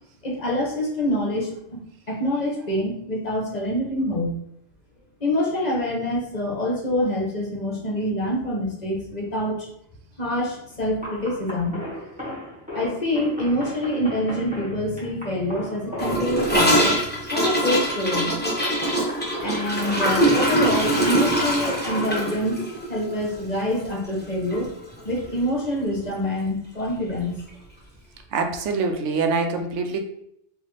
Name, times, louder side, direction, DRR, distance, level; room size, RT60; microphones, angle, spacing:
voice 1, 0.2-1.8 2.1-4.3 5.2-9.7 10.2-11.8 12.7-17.0 17.3-18.3 19.4-22.6 22.9-24.7 25.0-27.4, left 1 dB, 40° left, -2 dB, 0.9 m, -26 dB
sound 1, 10.4-22.4, left 1 dB, 5° right, 1.4 m, -37 dB
Gurgling / Toilet flush, 16.0-24.2 24.5-24.6 24.9-25.4 25.6-25.7 26.0-26.1 27.1-27.2, right 1 dB, 10° left, 0.9 m, -23 dB
voice 2, 28.3-30.0, right 4 dB, 85° right, 4 dB, 0.9 m, -24 dB
4.0 x 2.7 x 3.1 m, 0.74 s
omnidirectional pair, 1.2 m